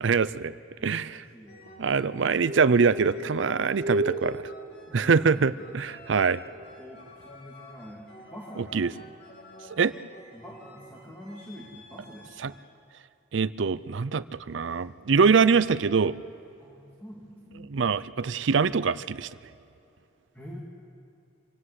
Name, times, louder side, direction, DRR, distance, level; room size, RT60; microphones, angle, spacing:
voice 1, 0.0-0.5 0.8-1.2 1.8-4.5 4.9-6.4 8.6-8.9 9.7-9.9 12.4-12.5 13.3-16.2 17.7-19.3, right 5 dB, 70° right, 15 dB, 0.5 m, -24 dB
voice 2, 0.8-1.8 2.2-2.4 3.0-3.2 4.9-5.6 6.8-9.0 10.3-12.5 16.6-17.7 20.3-20.6, equal, 10° left, -3 dB, 2.5 m, -46 dB
sound 1, 1.5-12.8 14.0-14.3, left 1 dB, 60° left, 3.2 m, -50 dB
sound 2, 2.4-5.4 6.3-6.7, right 1 dB, 20° right, 1.3 m, -34 dB
26.0 x 17.5 x 8.2 m, 2.8 s
head